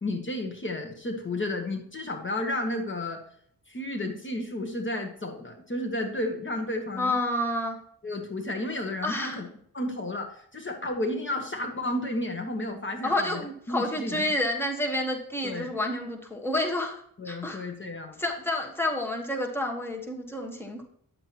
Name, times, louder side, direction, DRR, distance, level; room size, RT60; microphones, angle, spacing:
voice 1, 0.0-3.2 3.7-7.1 8.0-9.5 9.7-14.3 15.4-15.8 17.2-18.2, left 1 dB, 35° left, 3 dB, 1.2 m, -32 dB
voice 2, 7.0-7.8 9.0-9.4 13.0-17.6 18.2-20.8, left 1 dB, 5° left, 2 dB, 1.4 m, -29 dB
9.8 x 7.5 x 2.9 m, 0.65 s
wide cardioid pair, 100°, 35 cm